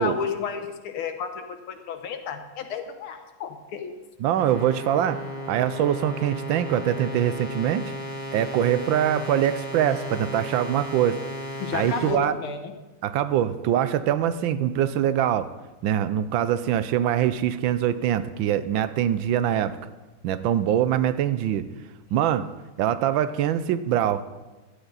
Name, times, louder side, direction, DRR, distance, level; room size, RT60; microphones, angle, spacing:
voice 1, 0.0-4.0 11.6-12.7, left 6 dB, 90° left, 7 dB, 2.0 m, -32 dB
voice 2, 4.2-7.9 8.3-11.2 11.7-12.3 13.0-15.5 15.8-19.8 20.2-21.7 22.1-22.5 22.8-24.2, right 10 dB, 75° right, 13 dB, 1.3 m, -23 dB
sound 1, 4.4-12.1, equal, 10° right, 4.1 m, -35 dB
16.0 x 11.5 x 4.0 m, 1.2 s
omnidirectional pair, 2.3 m